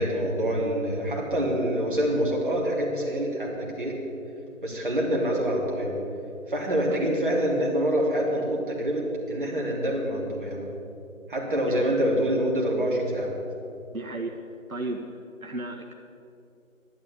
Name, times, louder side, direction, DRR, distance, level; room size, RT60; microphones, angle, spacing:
voice 1, 0.0-4.0 4.6-5.9 6.5-10.6 11.3-13.3, equal, 35° right, -3 dB, 3.2 m, -26 dB
voice 2, 13.9-14.4 14.7-15.0 15.4-15.9, right 2 dB, 75° right, 1 dB, 1.7 m, -34 dB
12.0 x 12.0 x 8.4 m, 2.8 s
figure-of-eight pair, 170°, 42 cm